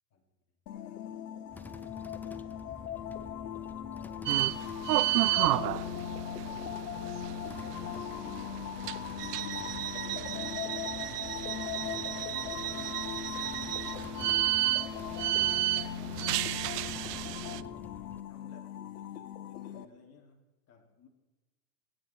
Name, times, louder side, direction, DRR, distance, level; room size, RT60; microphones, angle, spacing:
sound 1, 0.7-19.8, left 10 dB, 70° left, 1.4 m, -39 dB
sound 2, 1.5-18.2, left 2 dB, 5° left, 0.4 m, -50 dB
voice 1, 3.4-4.4 5.0-7.0 7.6-9.1 9.5-10.5 11.1-15.0 15.8-17.9 18.3-21.1, left 5 dB, 30° left, 1 dB, 2.9 m, -57 dB
sound 3, 4.3-17.6, right 16 dB, 75° right, 0.7 m, -32 dB
25.0 x 9.2 x 4.5 m, 1.1 s
hypercardioid pair, 110°, 47 cm